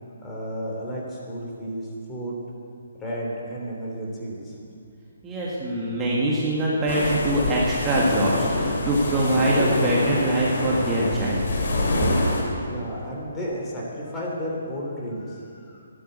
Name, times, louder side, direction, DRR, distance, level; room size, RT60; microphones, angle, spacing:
voice 1, 0.2-2.4 3.0-4.5 12.6-15.9, equal, 15° left, -3 dB, 3.3 m, -32 dB
voice 2, 5.2-11.4, right 1 dB, 15° right, -6 dB, 1.9 m, -23 dB
sound 1, 6.9-12.4, left 2 dB, 60° left, 3.5 m, -26 dB
12.5 x 11.0 x 8.2 m, 2.4 s
hypercardioid pair, 150°, 0 cm